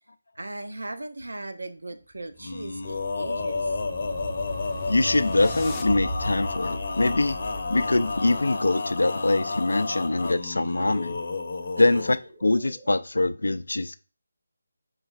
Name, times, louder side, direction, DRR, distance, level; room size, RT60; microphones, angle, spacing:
voice 1, 0.4-3.8 11.8-12.0, right 2 dB, 75° right, 0.6 m, -38 dB
sound 1, 2.2-8.5, left 1 dB, 15° left, 0.4 m, -37 dB
Male singing, 2.4-12.2, left 3 dB, 50° left, 0.8 m, -31 dB
voice 2, 4.9-7.4 7.7-11.2 11.8-12.2 12.4-14.0, left 2 dB, 75° left, 0.3 m, -23 dB
sound 2, 5.8-13.0, right 2 dB, 20° right, 1.4 m, -53 dB
5.1 x 3.2 x 2.4 m
figure-of-eight pair, 155°, 0 cm